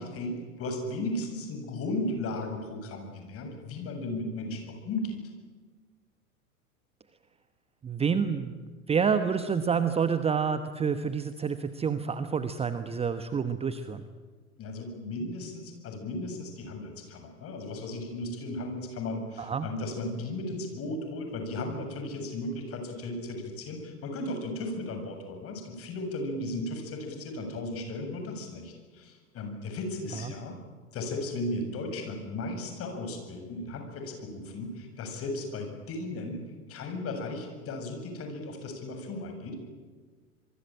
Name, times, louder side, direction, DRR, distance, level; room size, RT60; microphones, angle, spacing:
voice 1, 0.0-5.2 14.6-30.6 30.9-36.4 36.7-39.6, left 2 dB, 30° left, 5 dB, 7.4 m, -35 dB
voice 2, 7.8-8.5 8.9-14.0 19.4-19.7 30.2-30.3, right 6 dB, 15° right, 11 dB, 1.1 m, -28 dB
27.0 x 23.0 x 9.0 m, 1.4 s
figure-of-eight pair, 95°, 43 cm